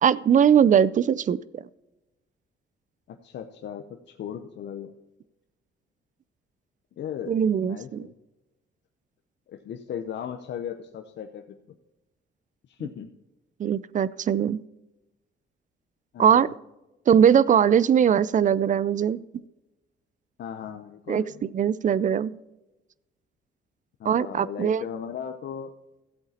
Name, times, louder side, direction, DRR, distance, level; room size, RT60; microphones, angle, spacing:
voice 1, 0.0-1.6 7.3-8.1 13.6-14.6 16.2-16.5 17.1-19.2 21.1-21.2 21.5-22.3 24.0-24.8, right 8 dB, 40° right, 20 dB, 0.4 m, -20 dB
voice 2, 3.1-4.9 7.0-8.1 9.5-11.8 12.7-13.1 16.1-16.5 20.4-21.5 24.0-25.7, left 8 dB, 60° left, 6 dB, 0.8 m, -37 dB
14.0 x 8.0 x 4.3 m, 1.0 s
cardioid pair, 90°, 20 cm